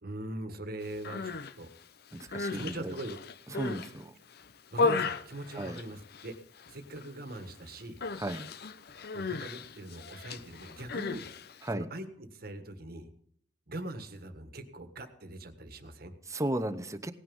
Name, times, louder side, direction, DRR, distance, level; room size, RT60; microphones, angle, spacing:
voice 1, 0.0-1.7 2.5-3.2 4.7-6.4 6.7-8.0 9.1-11.3 11.7-13.1 13.7-16.1, right 1 dB, 60° right, 8 dB, 1.5 m, -41 dB
Human voice, 0.9-1.5 2.1-3.9 4.3-6.3 6.6-7.1 7.3-7.5 8.0-11.7, left 4 dB, 60° left, 0.7 m, -35 dB
voice 2, 2.1-2.9 3.5-4.1 5.5-5.8 8.2-8.5 11.6-11.9 16.3-17.1, right 1 dB, 20° right, 8 dB, 0.9 m, -35 dB
18.0 x 9.3 x 5.5 m, 0.66 s
head